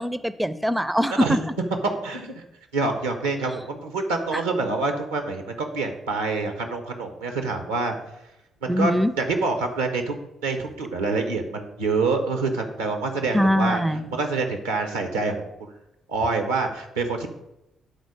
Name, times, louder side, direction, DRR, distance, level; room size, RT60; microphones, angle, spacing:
voice 1, 0.0-1.4 4.3-4.4 8.7-9.1 13.3-14.1, equal, 5° right, 14 dB, 0.4 m, -22 dB
voice 2, 2.0-2.4 2.7-7.9 8.6-8.9 9.2-10.1 10.4-13.8 14.1-15.5 16.1-17.3, right 3 dB, 85° right, 6 dB, 0.8 m, -26 dB
8.1 x 4.0 x 4.9 m, 0.89 s
hypercardioid pair, 40°, 0 cm